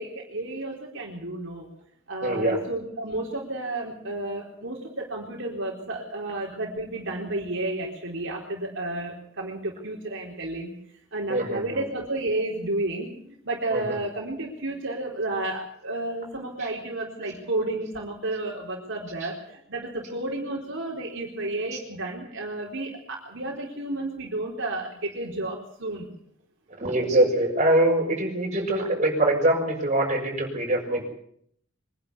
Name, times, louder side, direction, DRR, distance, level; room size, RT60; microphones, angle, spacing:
voice 1, 0.0-1.7 2.1-10.7 11.1-26.1, right 2 dB, 65° right, -2 dB, 4.2 m, -32 dB
voice 2, 2.2-2.6 11.3-11.6 13.7-13.8 26.8-31.1, right 1 dB, 35° right, -1 dB, 6.7 m, -23 dB
24.5 x 11.5 x 9.9 m, 0.69 s
head